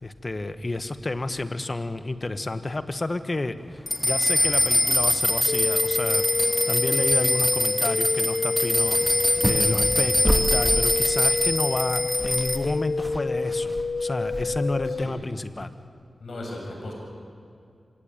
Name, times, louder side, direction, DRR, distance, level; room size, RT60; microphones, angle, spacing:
voice 1, 0.0-6.3 6.7-13.7 14.0-15.7, left 2 dB, 40° left, 10 dB, 1.4 m, -30 dB
sound 1, 3.9-12.6, left 1 dB, 10° left, 3.5 m, -23 dB
sound 2, 5.5-15.0, left 3 dB, 60° left, 0.6 m, -29 dB
sound 3, 8.2-8.4 8.6-11.0 11.8-11.9 12.0-14.8, right 1 dB, 15° right, 2.5 m, -30 dB
voice 2, 14.9-15.2 16.2-16.9, left 1 dB, 80° left, 0 dB, 7.0 m, -36 dB
25.5 x 18.0 x 9.0 m, 2.5 s
cardioid pair, 55°, 0 cm